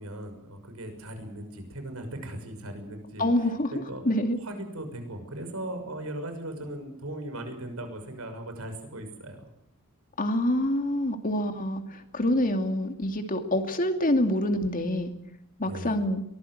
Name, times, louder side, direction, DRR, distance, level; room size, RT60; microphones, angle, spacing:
voice 1, 0.0-4.0 4.4-9.6 15.6-16.0, right 1 dB, 75° right, 6 dB, 6.4 m, -38 dB
voice 2, 3.2-3.7 4.1-4.4 10.2-15.1 15.6-16.2, left 1 dB, 40° left, 6 dB, 2.4 m, -26 dB
23.5 x 20.0 x 7.9 m, 0.75 s
head